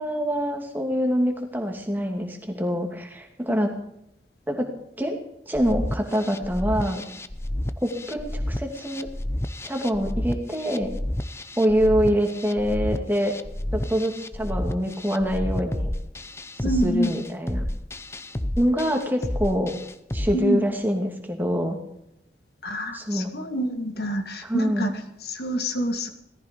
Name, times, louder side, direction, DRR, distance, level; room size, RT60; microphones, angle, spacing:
voice 1, 0.0-3.7 4.5-4.7 5.0-5.2 5.5-7.0 7.8-9.1 9.6-11.0 11.6-13.3 13.7-15.9 16.6-17.6 18.6-19.7 20.1-21.8 22.9-23.3 24.4-24.9, equal, 10° right, 2 dB, 2.4 m, -25 dB
sound 1, 5.5-20.3, left 1 dB, 15° left, 0.6 m, -31 dB
voice 2, 16.6-17.1 20.3-20.6 22.6-24.9 25.3-26.1, equal, 65° left, 5 dB, 2.0 m, -26 dB
18.0 x 14.5 x 5.2 m, 0.79 s
head